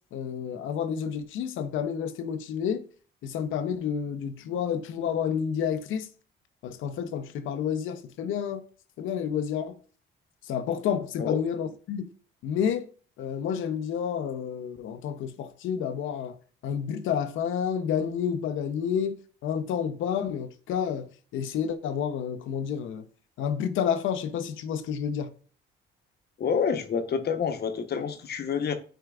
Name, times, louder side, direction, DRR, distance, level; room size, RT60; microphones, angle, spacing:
voice 1, 0.1-2.8 3.2-6.1 6.6-8.6 9.0-9.7 10.5-12.1 12.4-12.9 13.2-16.4 16.6-19.1 19.4-23.0 23.4-25.3, left 8 dB, 85° left, 0.7 m, -30 dB
voice 2, 26.4-28.8, left 6 dB, 55° left, 0.9 m, -28 dB
9.1 x 4.6 x 2.4 m
cardioid pair, 90°, 20 cm